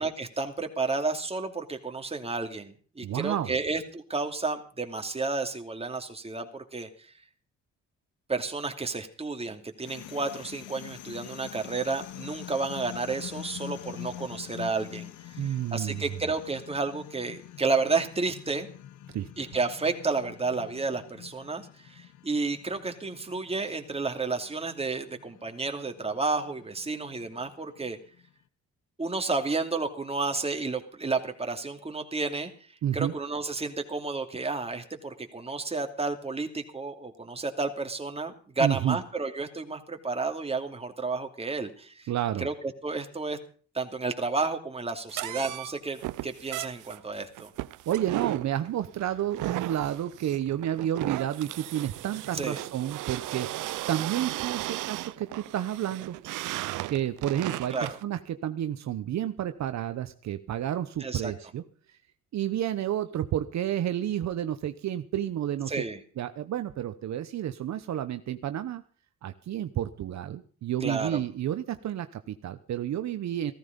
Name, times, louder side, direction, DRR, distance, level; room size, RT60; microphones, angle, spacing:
voice 1, 0.0-6.9 8.3-15.1 15.4-18.7 19.4-28.0 29.0-32.5 32.9-42.1 42.4-43.4 43.7-47.5 52.3-52.6 57.7-58.0 61.0-61.3 65.7-66.0 70.8-71.2, right 3 dB, 20° right, 5 dB, 2.6 m, -31 dB
voice 2, 3.0-3.6 15.4-16.0 19.1-19.5 32.8-33.1 38.6-39.0 42.1-42.5 47.9-56.2 56.9-61.6 62.3-65.8 66.2-68.8 69.2-73.5, right 11 dB, 65° right, 10 dB, 1.0 m, -30 dB
sound 1, 9.8-28.3, left 13 dB, 80° left, 1.0 m, -45 dB
sound 2, 45.1-58.0, right 17 dB, 90° right, 0.6 m, -36 dB
16.0 x 14.0 x 5.2 m, 0.42 s
cardioid pair, 90°, 30 cm